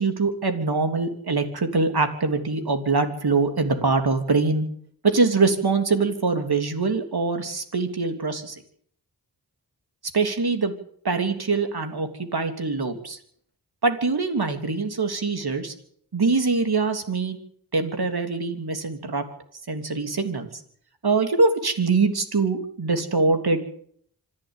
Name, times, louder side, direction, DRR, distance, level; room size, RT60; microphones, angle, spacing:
voice 1, 0.0-4.6 5.0-8.5 10.1-10.7 11.0-13.2 13.8-15.7 16.1-17.4 17.7-19.2 19.7-20.5 21.0-23.7, right 3 dB, 70° right, 6 dB, 3.2 m, -23 dB
26.0 x 11.5 x 9.1 m, 0.63 s
wide cardioid pair, 55°, 40 cm